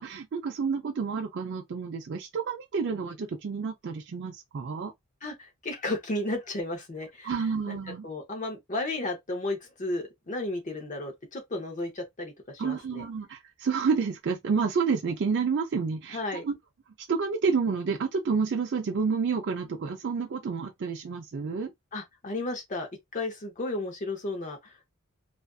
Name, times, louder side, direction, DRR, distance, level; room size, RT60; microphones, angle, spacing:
voice 1, 0.0-4.9 7.2-8.1 12.6-16.6 17.1-21.7, right 5 dB, 50° right, 0.4 m, -29 dB
voice 2, 5.2-7.4 7.6-7.8 8.0-13.0 16.1-16.4 21.9-24.9, left 2 dB, 35° left, 0.7 m, -33 dB
2.4 x 2.4 x 2.2 m
head